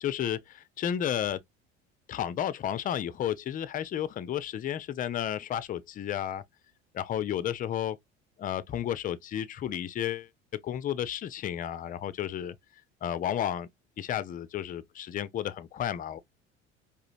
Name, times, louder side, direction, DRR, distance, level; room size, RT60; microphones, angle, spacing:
voice 1, 0.0-1.4 2.1-6.4 6.9-8.0 8.4-12.5 13.0-13.7 14.0-16.2, left 10 dB, 25° left, 0.5 m, -32 dB
4.9 x 2.5 x 2.5 m
figure-of-eight pair, 65°, 35 cm